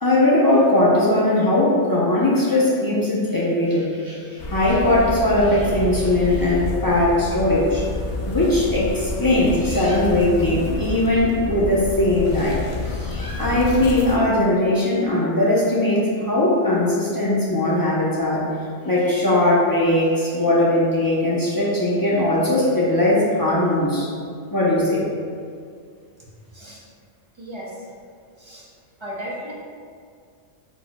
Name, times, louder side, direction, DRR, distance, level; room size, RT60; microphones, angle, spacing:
voice 1, 0.0-7.8 8.3-12.6 12.9-18.5 18.8-24.1 24.5-25.0, left 1 dB, 25° left, -7 dB, 0.5 m, -19 dB
sound 1, 4.4-14.2, left 2 dB, 75° left, 1.0 m, -29 dB
voice 2, 26.5-26.8 27.3-27.9 28.4-28.7 29.0-29.5, equal, 35° right, -5 dB, 0.5 m, -35 dB
4.4 x 4.3 x 2.2 m, 2.1 s
omnidirectional pair, 1.2 m